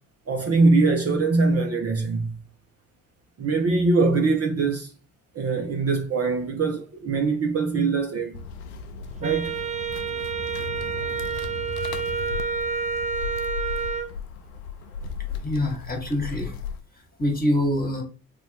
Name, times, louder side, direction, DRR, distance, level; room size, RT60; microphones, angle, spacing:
voice 1, 0.3-2.3 3.4-4.9 5.3-8.3 9.2-9.6, right 3 dB, 35° right, 0.7 m, -22 dB
sound 1, 8.3-16.8, left 6 dB, 80° left, 0.5 m, -36 dB
Wind instrument woodwind instrument, 9.2-14.1, right 5 dB, 20° right, 0.4 m, -29 dB
voice 2, 15.4-16.6 17.2-18.0, left 1 dB, 20° left, 1.4 m, -25 dB
3.3 x 2.5 x 3.3 m
hypercardioid pair, 45°, 42 cm